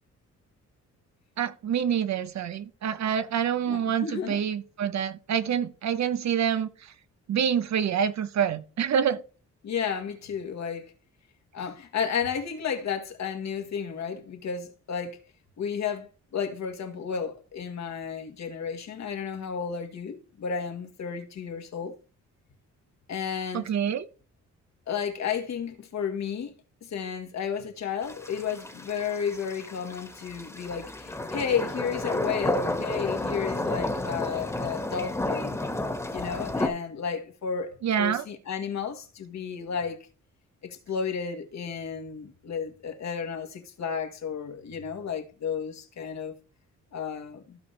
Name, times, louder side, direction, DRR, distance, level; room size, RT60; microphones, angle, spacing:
voice 1, 1.4-6.9 7.3-9.2 23.5-24.1 37.8-38.2, right 8 dB, 65° right, 1.0 m, -27 dB
voice 2, 3.7-4.4 9.6-10.9 11.5-15.2 15.6-22.0 23.1-23.7 24.9-26.5 26.8-35.6 36.1-40.1 40.6-46.4 46.9-47.6, left 6 dB, 65° left, 1.8 m, -32 dB
sound 1, 28.0-36.7, left 2 dB, 10° left, 1.7 m, -31 dB
15.0 x 5.4 x 3.4 m
cardioid pair, 100°, 30 cm